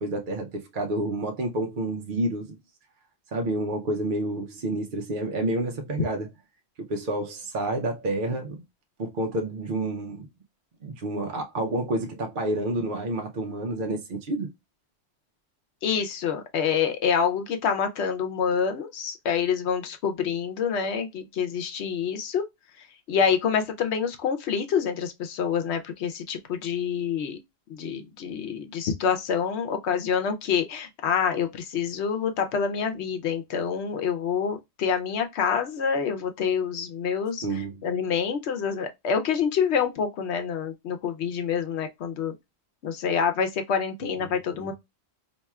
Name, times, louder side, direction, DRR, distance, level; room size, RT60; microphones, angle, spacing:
voice 1, 0.0-2.6 3.3-6.3 6.9-8.6 9.0-10.3 10.8-14.5 37.4-37.7 44.0-44.1 44.6-44.7, right 1 dB, 55° right, 0.8 m, -29 dB
voice 2, 15.8-22.5 22.8-27.4 27.7-42.3 42.8-44.7, left 7 dB, 90° left, 1.0 m, -27 dB
4.3 x 2.7 x 2.3 m
omnidirectional pair, 1.1 m